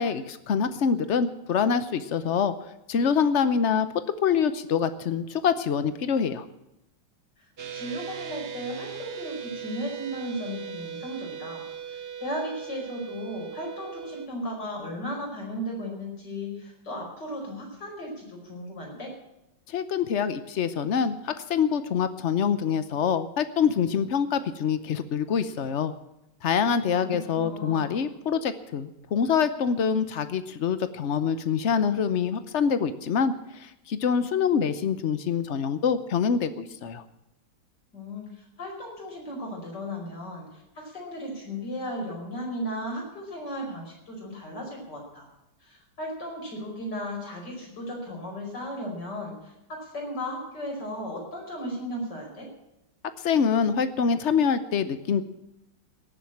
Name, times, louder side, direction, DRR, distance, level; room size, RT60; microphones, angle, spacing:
voice 1, 0.0-2.5 2.9-3.9 4.2-6.5 19.7-25.9 26.4-37.0 53.2-55.2, left 7 dB, 75° left, 12 dB, 0.6 m, -25 dB
sound 1, 7.6-14.3, right 8 dB, 50° right, 0.7 m, -38 dB
voice 2, 7.7-19.1 26.9-28.0 37.9-45.3 45.6-52.5, equal, 50° left, 0 dB, 5.6 m, -36 dB
17.5 x 7.5 x 8.7 m, 0.88 s
omnidirectional pair, 2.3 m